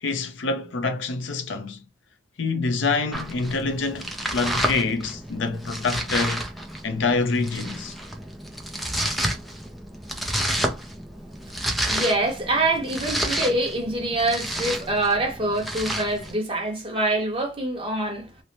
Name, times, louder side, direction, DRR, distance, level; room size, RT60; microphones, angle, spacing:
voice 1, 0.0-1.8 2.4-6.4 6.8-8.0, left 3 dB, 85° left, 0.6 m, -26 dB
Domestic sounds home sounds, 3.1-16.3, right 1 dB, ahead, 0.4 m, -30 dB
voice 2, 11.8-18.3, right 2 dB, 30° right, 1.0 m, -25 dB
3.1 x 2.0 x 2.6 m
head